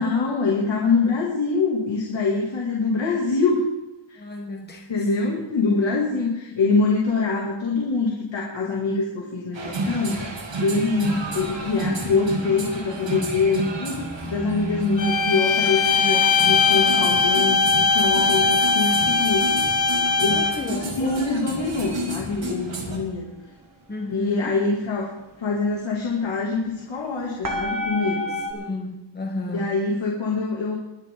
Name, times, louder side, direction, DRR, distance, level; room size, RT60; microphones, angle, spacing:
voice 1, 0.0-3.7 4.1-4.2 4.9-19.5 20.2-23.3 24.1-25.1 25.4-28.3 29.5-30.7, left 4 dB, 75° left, -3 dB, 2.7 m, -24 dB
voice 2, 4.2-5.1 20.3-21.2 23.9-24.6 28.5-29.7, left 2 dB, 20° left, 1 dB, 1.2 m, -32 dB
sound 1, 9.5-23.0, right 1 dB, 70° right, 3.0 m, -31 dB
sound 2, 11.0-28.5, left 1 dB, 45° right, 1.8 m, -39 dB
sound 3, 15.0-20.7, left 4 dB, 40° left, 1.8 m, -20 dB
22.5 x 10.0 x 3.9 m, 0.92 s
wide cardioid pair, 170°, 46 cm